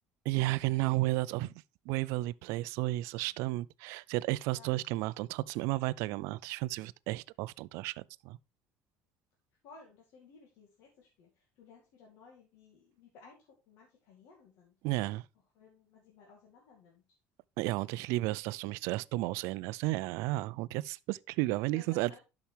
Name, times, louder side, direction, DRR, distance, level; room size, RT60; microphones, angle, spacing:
voice 1, 0.3-1.5 1.9-8.4 14.8-15.2 17.6-22.2, right 19 dB, 80° right, 0.4 m, -33 dB
voice 2, 3.2-3.7 4.5-4.7 9.6-14.8 15.5-17.0 21.5-22.2, left 4 dB, 65° left, 2.2 m, -57 dB
12.0 x 5.9 x 3.4 m
cardioid pair, 150°, 5 cm